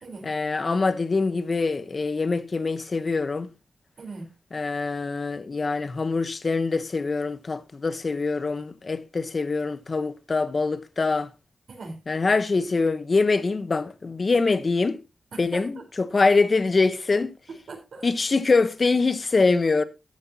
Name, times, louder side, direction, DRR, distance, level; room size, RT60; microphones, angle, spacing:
voice 1, 0.2-3.5 4.5-11.3 12.1-15.0 15.4-17.3 18.0-19.8, left 3 dB, 50° left, 1.1 m, -24 dB
voice 2, 4.0-4.3 11.7-12.0 15.3-15.9 17.5-18.1, right 3 dB, 85° right, 4.1 m, -40 dB
13.5 x 9.7 x 2.9 m
cardioid pair, 70°, 0 cm